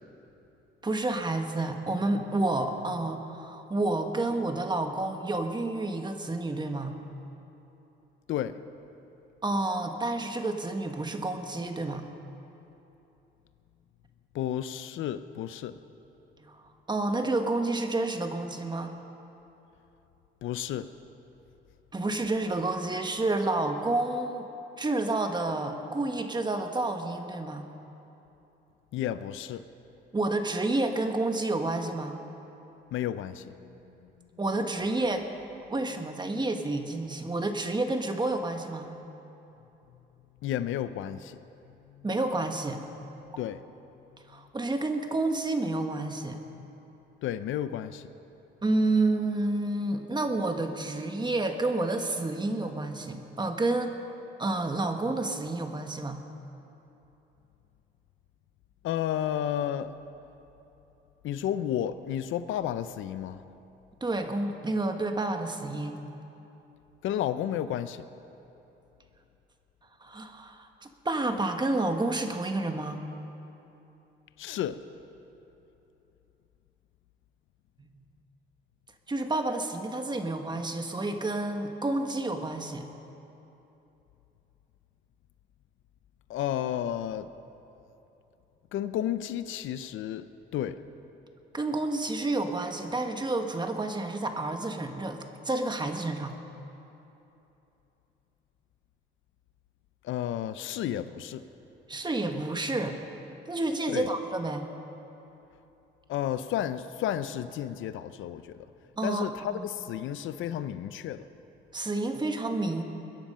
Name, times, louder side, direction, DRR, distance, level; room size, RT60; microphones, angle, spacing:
voice 1, 0.8-7.0 9.4-12.1 16.4-16.6 16.9-18.9 21.9-24.5 24.8-27.7 30.1-32.2 34.4-35.2 35.7-39.0 42.0-42.8 44.3-46.4 48.6-54.0 54.4-56.2 64.0-66.0 70.0-73.0 79.1-82.9 91.5-96.4 101.9-103.0 103.5-104.7 109.0-109.6 111.7-112.8, right 2 dB, 20° right, 5 dB, 1.4 m, -29 dB
voice 2, 8.3-8.6 14.3-15.8 20.4-20.9 28.9-29.6 32.9-34.1 40.4-41.4 41.7-42.1 43.4-43.6 47.2-48.1 58.8-59.9 61.2-63.4 67.0-68.0 74.4-74.8 86.3-87.3 88.7-90.3 90.5-90.8 100.0-101.4 103.9-104.1 106.1-108.7 109.0-111.3, left 11 dB, 80° left, 13 dB, 0.6 m, -32 dB
22.0 x 10.5 x 5.6 m, 3.0 s
cardioid pair, 90°, 20 cm